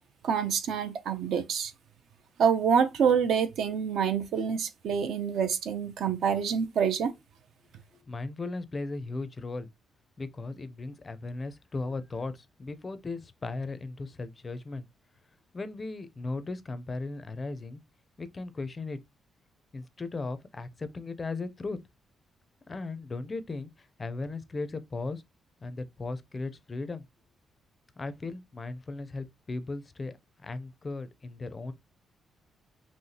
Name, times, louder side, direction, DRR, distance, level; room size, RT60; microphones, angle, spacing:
voice 1, 0.2-1.7 2.4-7.1, right 7 dB, 70° right, 0.7 m, -26 dB
voice 2, 8.1-9.7 10.2-14.9 15.5-17.8 18.2-19.0 19.7-21.8 22.7-25.2 25.6-27.0 28.0-30.1 30.4-31.7, left 3 dB, 20° left, 0.4 m, -37 dB
5.6 x 3.1 x 2.7 m
cardioid pair, 175°, 0 cm